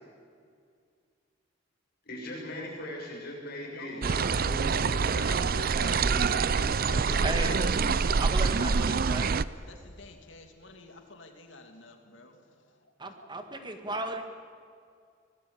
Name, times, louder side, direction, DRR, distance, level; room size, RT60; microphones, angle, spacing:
voice 1, 2.0-7.8, left 1 dB, 55° left, -2 dB, 7.1 m, -39 dB
voice 2, 3.6-5.9 7.8-13.3, left 2 dB, 70° left, 5 dB, 2.5 m, -50 dB
sound 1, 4.0-9.4, right 5 dB, 50° right, 0.6 m, -26 dB
voice 3, 7.2-7.6 8.2-9.3 13.0-14.2, right 2 dB, 25° right, 6 dB, 1.7 m, -35 dB
24.5 x 19.0 x 8.8 m, 2.2 s
head